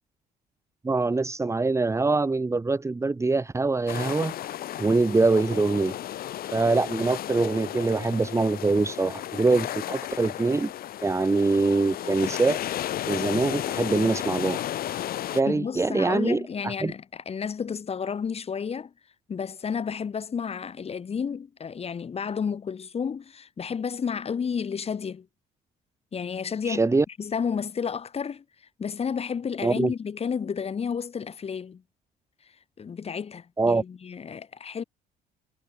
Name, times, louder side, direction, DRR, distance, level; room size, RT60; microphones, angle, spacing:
voice 1, 0.8-5.9 6.5-10.7 11.0-12.6 13.1-14.9 15.3-16.9 26.7-27.1 29.6-29.9 33.6-33.8, right 3 dB, 15° right, 2.3 m, -24 dB
sound 1, 3.9-15.4, left 12 dB, 60° left, 1.7 m, -33 dB
voice 2, 15.5-18.9 19.3-25.3 26.1-26.9 27.2-28.4 28.8-31.8 32.8-34.8, left 6 dB, 35° left, 5.5 m, -31 dB
cardioid pair, 110°, 17 cm